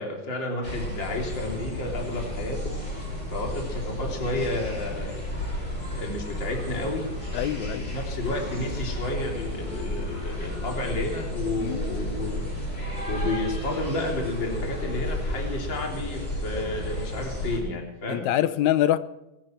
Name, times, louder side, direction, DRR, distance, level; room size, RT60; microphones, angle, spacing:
voice 1, 0.0-2.8 3.3-5.6 5.9-7.1 7.6-18.3, left 2 dB, 40° left, 1 dB, 4.0 m, -31 dB
sound 1, 0.6-17.6, equal, 20° left, 7.2 m, -32 dB
voice 2, 7.3-7.8 11.6-11.8 18.1-19.0, left 12 dB, 80° left, 13 dB, 2.1 m, -24 dB
23.5 x 13.5 x 4.6 m, 0.93 s
omnidirectional pair, 3.3 m